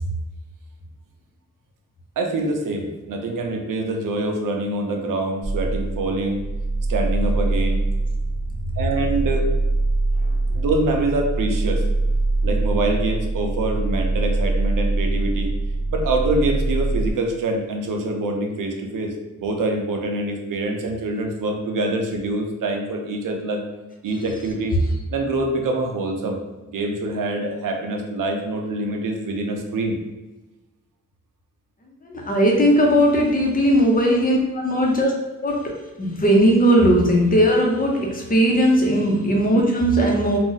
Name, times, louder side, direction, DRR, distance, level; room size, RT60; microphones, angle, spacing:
voice 1, 2.2-6.4 6.9-7.9 8.8-9.5 10.6-11.9 12.4-15.5 15.9-23.6 24.0-24.8 25.1-26.4 26.7-30.0 33.4-33.5 34.3-34.5 34.8-34.9 38.7-38.9, right 2 dB, 90° right, 3 dB, 0.5 m, -25 dB
sound 1, 5.4-17.1, right 2 dB, 55° right, 0.8 m, -23 dB
voice 2, 32.1-35.1 35.4-35.7 36.0-40.4, equal, 30° left, 0 dB, 0.5 m, -18 dB
2.5 x 2.0 x 3.8 m, 1.1 s
wide cardioid pair, 170°, 31 cm